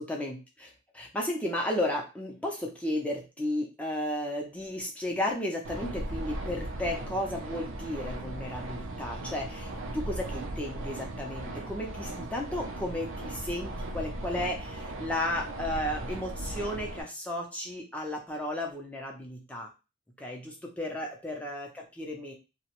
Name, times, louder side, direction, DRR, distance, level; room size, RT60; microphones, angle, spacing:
voice 1, 0.0-19.7 20.2-22.3, left 1 dB, 5° left, -1 dB, 0.5 m, -34 dB
sound 1, 5.6-17.0, right 1 dB, 80° right, 0.5 m, -37 dB
2.8 x 2.1 x 2.9 m, 0.29 s
head